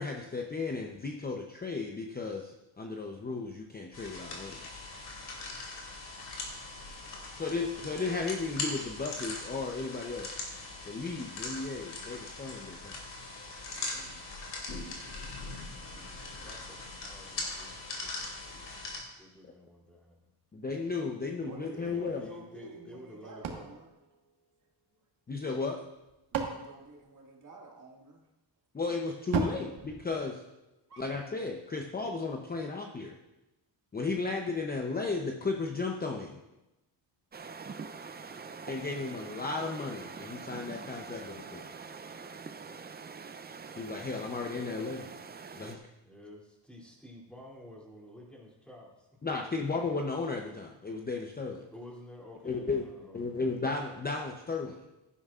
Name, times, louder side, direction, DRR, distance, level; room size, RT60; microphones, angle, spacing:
voice 1, 0.0-4.6 7.4-10.3 10.9-13.0 19.4-19.5 20.5-22.2 25.3-25.8 28.7-30.4 31.0-33.2 33.9-36.4 38.7-41.6 43.8-45.1 45.6-45.9 49.2-51.7 52.4-52.8 53.1-54.8, left 4 dB, 20° left, 2 dB, 0.7 m, -34 dB
sound 1, 3.9-19.0, left 3 dB, 60° left, 2.9 m, -41 dB
voice 2, 15.7-20.3 21.7-23.7 46.0-49.2 51.7-53.4, left 1 dB, ahead, -3 dB, 2.8 m, -51 dB
voice 3, 21.2-23.9 24.9-25.0 26.3-28.2 30.9-31.1, right 2 dB, 40° right, -1 dB, 2.1 m, -50 dB
sound 2, 23.4-25.0 25.8-27.8 29.3-30.9, right 5 dB, 80° right, 1.5 m, -37 dB
sound 3, 37.3-45.8, right 5 dB, 20° right, 0.5 m, -45 dB
15.5 x 11.0 x 2.5 m, 0.97 s
cardioid pair, 120°, 45 cm